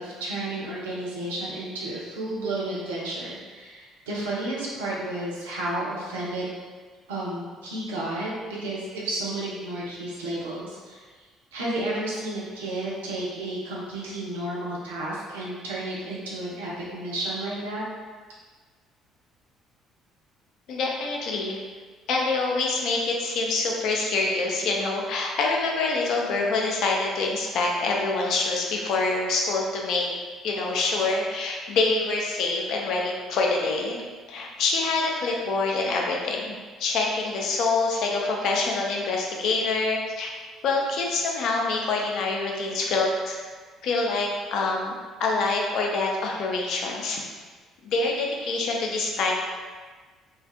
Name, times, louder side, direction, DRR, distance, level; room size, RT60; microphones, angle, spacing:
voice 1, 0.0-6.5 7.1-11.1 11.5-17.8, right 1 dB, 80° right, -6 dB, 0.6 m, -32 dB
voice 2, 20.7-21.6 22.1-30.1 30.4-34.0 34.3-40.3 40.6-43.4 43.8-44.9 45.2-47.2 47.8-49.3, left 3 dB, 60° left, -1 dB, 0.5 m, -26 dB
3.3 x 2.2 x 2.5 m, 1.4 s
hypercardioid pair, 50°, 0 cm